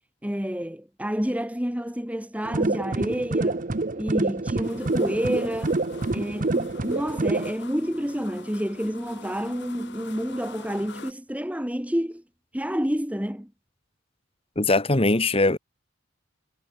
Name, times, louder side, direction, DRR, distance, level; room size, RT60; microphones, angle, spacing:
voice 1, 0.2-3.7 4.0-5.8 6.1-12.2 12.5-13.5, equal, 5° right, 2.1 m, -29 dB
sound 1, 2.4-7.5, right 2 dB, 40° right, 0.9 m, -26 dB
sound 2, 4.6-11.1, left 3 dB, 55° left, 2.6 m, -44 dB
voice 2, 14.6-15.6, left 2 dB, 30° left, 1.3 m, -21 dB
head